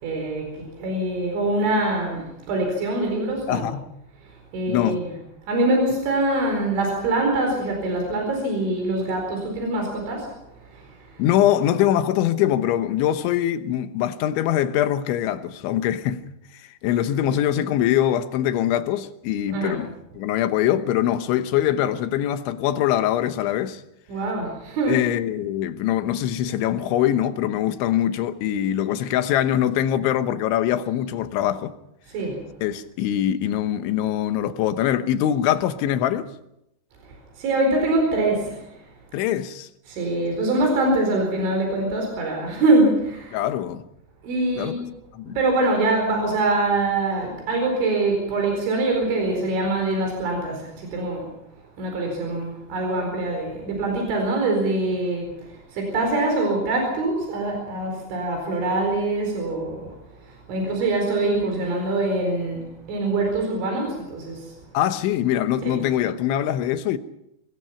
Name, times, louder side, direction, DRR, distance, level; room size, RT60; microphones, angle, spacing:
voice 1, 0.0-3.7 4.5-5.1 5.5-10.3 10.7-10.8 19.5-19.8 24.1-25.0 32.1-32.4 37.4-38.6 39.9-43.4 44.2-44.7 45.3-51.2 51.8-55.3 55.7-59.9 60.5-64.5 65.6-65.8, right 2 dB, 90° right, 6.9 m, -24 dB
voice 2, 3.5-3.9 4.7-5.0 11.2-16.3 16.7-23.8 24.9-31.7 32.6-36.3 39.1-39.7 43.3-43.8 44.6-44.7 45.1-45.4 64.8-67.0, left 11 dB, 90° left, 3.5 m, -23 dB
24.0 x 20.5 x 5.9 m
omnidirectional pair, 5.2 m